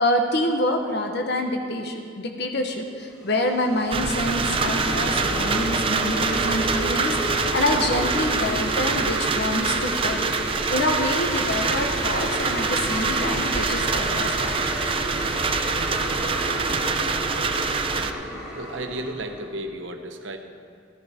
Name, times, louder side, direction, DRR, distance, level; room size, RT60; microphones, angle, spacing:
voice 1, 0.0-10.3 10.7-14.6, left 1 dB, 60° left, 4 dB, 1.1 m, -26 dB
sound 1, 3.1-19.5, equal, 5° right, 3.0 m, -31 dB
sound 2, 3.9-18.1, right 4 dB, 30° right, 0.5 m, -25 dB
voice 2, 18.5-20.4, right 1 dB, 70° right, 5 dB, 1.0 m, -33 dB
15.5 x 10.0 x 4.3 m, 2.3 s
head